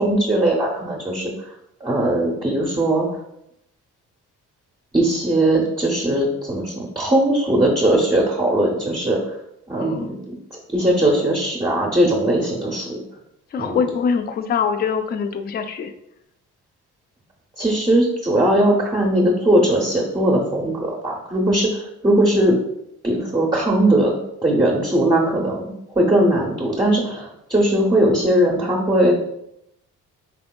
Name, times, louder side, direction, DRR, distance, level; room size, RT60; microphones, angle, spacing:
voice 1, 0.0-1.5 1.8-3.2 4.9-9.2 9.7-10.2 10.5-13.0 13.6-13.8 17.6-22.6 23.0-29.2, right 1 dB, 15° right, -3 dB, 0.7 m, -19 dB
voice 2, 9.8-10.1 13.5-15.9, left 6 dB, 35° left, 8 dB, 0.4 m, -23 dB
4.4 x 3.4 x 2.2 m, 0.80 s
cardioid pair, 90°, 30 cm